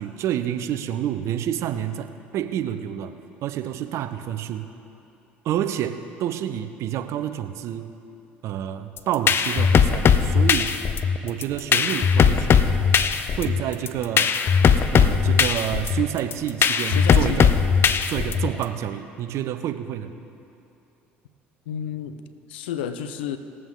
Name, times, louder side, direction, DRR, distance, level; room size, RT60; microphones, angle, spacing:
voice 1, 0.0-3.1 3.4-4.7 5.4-7.9 8.4-10.8 11.2-12.7 13.4-14.3 14.9-17.6 18.1-20.1, right 10 dB, 60° right, 9 dB, 0.8 m, -28 dB
sound 1, 9.0-18.6, left 6 dB, 45° left, 0.6 m, -19 dB
voice 2, 16.8-17.4 21.7-22.2 22.5-23.4, left 8 dB, 80° left, 11 dB, 0.7 m, -31 dB
19.5 x 7.8 x 3.9 m, 2.8 s
hypercardioid pair, 65°, 6 cm